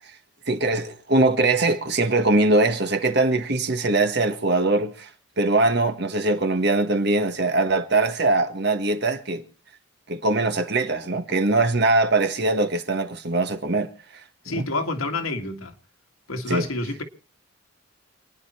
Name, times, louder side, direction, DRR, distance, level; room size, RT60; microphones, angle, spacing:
voice 1, 0.5-5.1 5.4-9.4 10.1-13.9 14.5-14.6 16.5-16.7, right 2 dB, 50° right, 1.5 m, -22 dB
voice 2, 14.4-15.8 16.3-17.0, left 2 dB, 85° left, 2.1 m, -28 dB
28.0 x 10.0 x 4.3 m
head